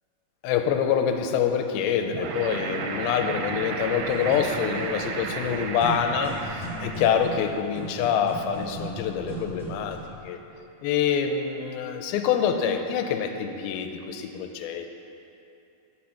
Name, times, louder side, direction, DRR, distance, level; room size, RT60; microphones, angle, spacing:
voice 1, 0.4-10.0 10.2-10.4 10.8-14.9, left 7 dB, 85° left, 6 dB, 2.4 m, -26 dB
sound 1, 2.1-7.6, right 5 dB, 85° right, 2.6 m, -34 dB
sound 2, 4.1-10.2, right 1 dB, ahead, 1.2 m, -37 dB
13.0 x 5.0 x 5.8 m, 2.8 s
omnidirectional pair, 4.5 m